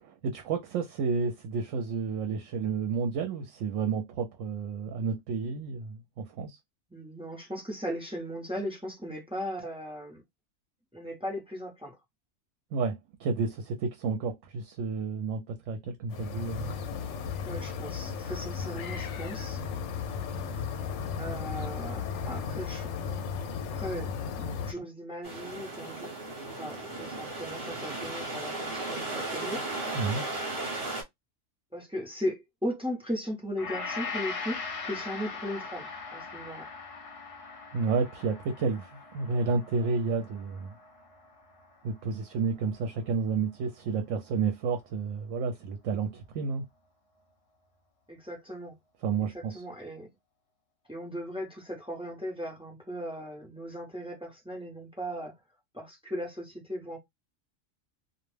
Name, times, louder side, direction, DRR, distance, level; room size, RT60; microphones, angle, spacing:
voice 1, 0.0-6.6 12.7-16.7 29.9-30.2 37.7-40.7 41.8-46.6 49.0-49.6, right 5 dB, 80° right, 0.9 m, -31 dB
voice 2, 6.9-10.2 10.9-12.0 17.4-19.6 21.2-22.9 23.7-26.1 26.6-29.6 31.7-36.7 48.1-48.7 49.3-50.1 50.9-55.3 55.7-57.0, equal, 5° right, 0.6 m, -37 dB
sound 1, 16.1-24.7, left 6 dB, 70° left, 0.8 m, -35 dB
sound 2, 25.2-31.0, right 2 dB, 45° right, 1.1 m, -35 dB
Gong, 33.6-42.0 42.3-42.5, left 4 dB, 45° left, 0.4 m, -40 dB
2.3 x 2.1 x 3.1 m
omnidirectional pair, 1.3 m